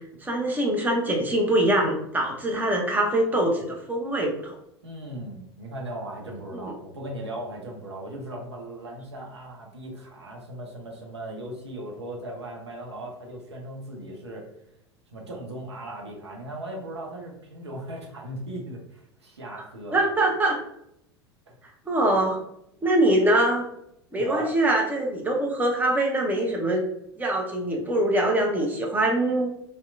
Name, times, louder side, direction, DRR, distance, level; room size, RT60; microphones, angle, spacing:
voice 1, 0.2-4.6 6.5-6.7 19.9-20.6 21.9-22.4 22.8-23.6 24.1-26.8 27.2-29.5, right 1 dB, 10° right, 0 dB, 0.6 m, -23 dB
voice 2, 4.8-14.5 15.1-20.0 21.5-21.6 24.2-24.5, right 1 dB, 80° right, 0 dB, 0.6 m, -38 dB
2.8 x 2.1 x 2.4 m, 0.76 s
figure-of-eight pair, 80°, 14 cm